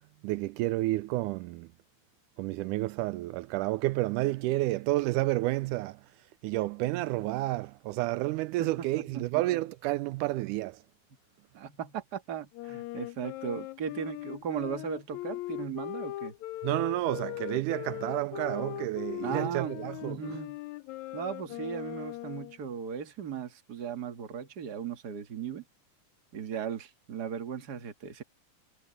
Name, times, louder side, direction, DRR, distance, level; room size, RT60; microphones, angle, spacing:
voice 1, 0.2-1.7 2.4-6.1 6.4-10.8 16.6-20.4, right 18 dB, 85° right, 2.0 m, -30 dB
voice 2, 8.6-9.4 11.5-16.3 19.2-19.7 20.0-20.6 21.1-25.6 26.3-28.2, right 8 dB, 35° right, 1.9 m, -37 dB
Wind instrument woodwind instrument, 12.5-22.6, left 16 dB, 80° left, 1.7 m, -39 dB
omnidirectional pair, 3.6 m